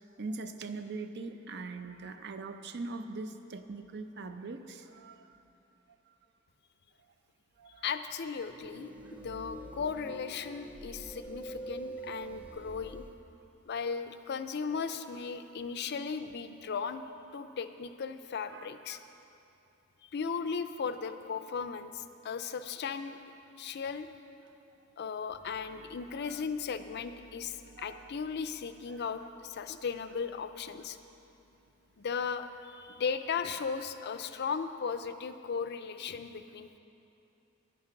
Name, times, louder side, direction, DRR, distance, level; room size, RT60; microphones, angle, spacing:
voice 1, 0.2-5.3 7.6-7.9 18.5-19.3 26.2-26.4 27.8-28.1 28.9-29.2, right 3 dB, 55° right, 8 dB, 0.6 m, -42 dB
voice 2, 7.8-13.0 13.7-17.0 17.3-19.0 20.1-23.2 23.6-24.1 25.0-31.0 32.0-36.8, left 6 dB, 55° left, 10 dB, 0.4 m, -36 dB
sound 1, 8.4-13.1, right 2 dB, 5° right, 0.7 m, -45 dB
sound 2, 25.3-32.9, left 1 dB, 80° right, 1.8 m, -62 dB
9.7 x 9.4 x 5.8 m, 2.8 s
head